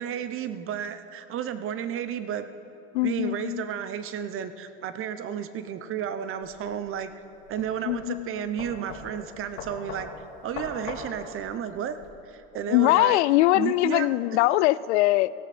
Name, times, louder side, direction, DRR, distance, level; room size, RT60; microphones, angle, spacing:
voice 1, 0.0-2.5 3.0-7.1 7.5-10.1 10.4-11.9 12.3-13.2 13.5-14.1, right 9 dB, 40° right, 11 dB, 0.9 m, -32 dB
voice 2, 2.9-3.6 7.8-8.3 12.7-15.3, left 18 dB, 80° left, 18 dB, 0.5 m, -22 dB
sound 1, 6.4-12.1, left 4 dB, 60° left, 2.9 m, -41 dB
17.0 x 14.5 x 4.3 m, 2.7 s
supercardioid pair, 110°, 33 cm